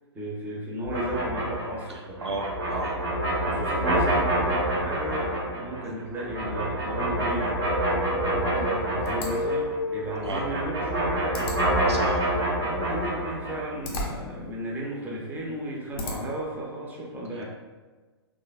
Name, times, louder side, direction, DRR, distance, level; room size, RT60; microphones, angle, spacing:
voice 1, 0.1-2.2 3.5-11.5 12.6-17.4, right 1 dB, 10° right, -4 dB, 0.7 m, -34 dB
sound 1, 0.8-9.8 10.1-13.7, right 1 dB, 60° right, 0.9 m, -27 dB
voice 2, 1.9-3.0 5.8-5.9 10.2-10.4 11.9-12.2, right 2 dB, 85° right, 1 dB, 0.5 m, -33 dB
sound 2, 7.1-10.8, left 1 dB, 85° left, 0.6 m, -33 dB
sound 3, 9.0-16.5, left 1 dB, 35° left, 0.6 m, -40 dB
3.3 x 2.4 x 2.4 m, 1.3 s
hypercardioid pair, 115°, 14 cm